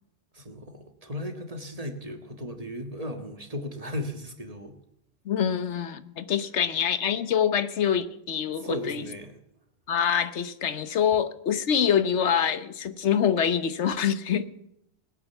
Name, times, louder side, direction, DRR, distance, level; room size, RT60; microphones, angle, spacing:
voice 1, 0.3-4.7 8.6-9.3, left 1 dB, 35° right, 6 dB, 1.7 m, -36 dB
voice 2, 5.3-9.0 9.9-14.5, left 8 dB, 85° left, 13 dB, 1.2 m, -25 dB
20.0 x 8.9 x 7.0 m, 0.78 s
omnidirectional pair, 1.2 m